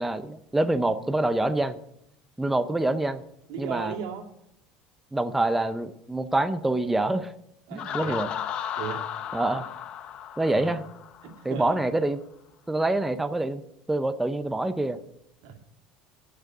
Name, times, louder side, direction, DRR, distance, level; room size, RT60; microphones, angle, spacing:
voice 1, 0.0-1.8 2.4-3.2 3.6-3.9 5.1-7.3 7.7-8.3 9.3-9.7 10.4-10.9 11.4-12.2 12.7-13.6 13.9-15.0, right 2 dB, 5° right, 10 dB, 0.6 m, -26 dB
voice 2, 3.5-4.2 7.7-8.2 8.7-9.0 10.5-10.7 11.2-11.7 15.4-15.5, right 8 dB, 85° right, 2 dB, 2.3 m, -36 dB
Laughter, 7.8-11.5, left 9 dB, 40° left, 0.9 m, -35 dB
11.0 x 6.6 x 9.0 m, 0.77 s
cardioid pair, 145°, 2 cm